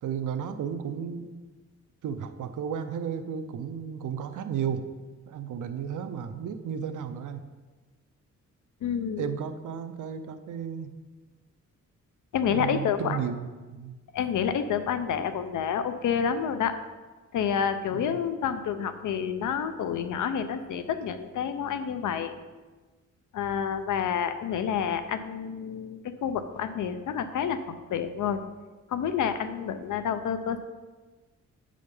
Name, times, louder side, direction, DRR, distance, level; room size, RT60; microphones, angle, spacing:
voice 1, 0.0-1.3 2.0-4.9 5.3-7.5 9.2-10.9 12.5-14.0 17.9-18.2, right 7 dB, 85° right, 9 dB, 0.6 m, -33 dB
voice 2, 8.8-9.3 12.3-13.2 14.1-16.8 17.3-22.3 23.3-28.4 28.9-30.6, left 7 dB, 90° left, 10 dB, 0.6 m, -29 dB
6.7 x 5.0 x 5.3 m, 1.3 s
wide cardioid pair, 160°, 30 cm